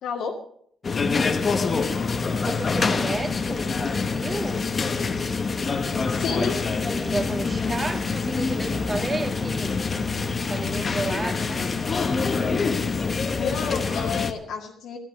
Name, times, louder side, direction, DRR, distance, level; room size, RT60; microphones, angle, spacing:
voice 1, 0.0-0.3 6.1-6.6 13.3-15.0, left 6 dB, 80° left, -1 dB, 2.0 m, -30 dB
sound 1, 0.8-14.3, left 4 dB, 30° left, 1.0 m, -26 dB
sound 2, 2.2-10.6, left 2 dB, 10° left, 1.3 m, -44 dB
voice 2, 2.3-4.6 6.3-9.8 10.5-11.7 13.9-14.2, right 2 dB, 20° right, 5 dB, 2.0 m, -32 dB
14.0 x 12.5 x 6.4 m, 0.66 s
cardioid pair, 145°, 0 cm